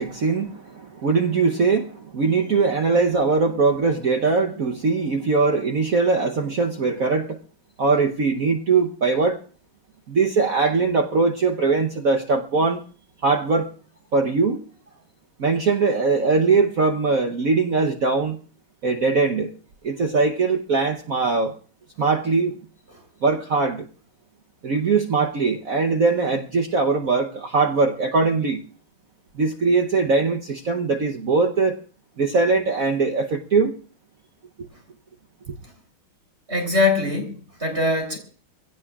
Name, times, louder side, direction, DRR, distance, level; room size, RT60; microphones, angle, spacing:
voice 1, 0.0-7.4 7.8-9.4 10.1-12.8 13.2-13.7 14.1-14.6 15.4-18.4 18.8-19.5 19.8-21.5 22.0-22.5 23.2-23.9 24.6-28.6 29.3-31.8 32.2-33.8, right 4 dB, 50° right, 1.1 m, -21 dB
voice 2, 36.5-38.2, left 3 dB, 30° right, 4.2 m, -23 dB
24.5 x 17.0 x 2.4 m
omnidirectional pair, 2.4 m